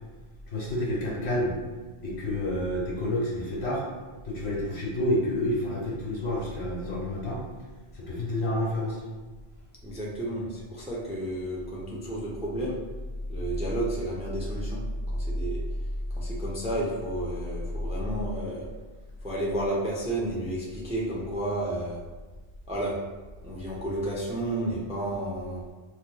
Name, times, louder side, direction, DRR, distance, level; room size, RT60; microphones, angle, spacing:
voice 1, 0.5-1.6 2.0-3.8 4.2-7.4 7.9-9.0, left 1 dB, 85° left, -5 dB, 1.4 m, -29 dB
voice 2, 9.8-12.8 13.3-14.8 15.1-15.6 16.2-18.7 19.2-22.0 22.7-22.9 23.4-25.6, right 1 dB, 10° right, -4 dB, 0.4 m, -32 dB
4.2 x 2.9 x 2.2 m, 1.3 s
omnidirectional pair, 1.1 m